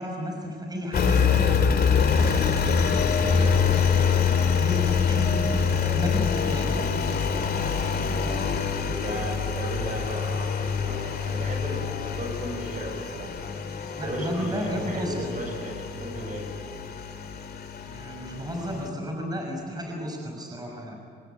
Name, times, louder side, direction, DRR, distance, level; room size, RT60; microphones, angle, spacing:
voice 1, 0.0-1.6 4.1-6.8 13.9-15.3 17.9-21.0, equal, 20° right, 1 dB, 6.1 m, -32 dB
Engine, 0.9-18.9, left 6 dB, 50° left, 2.6 m, -25 dB
voice 2, 3.1-3.6 8.2-13.4 13.9-16.6, right 1 dB, 40° right, 3 dB, 7.2 m, -35 dB
27.5 x 20.0 x 9.2 m, 2.5 s
cardioid pair, 90°, 20 cm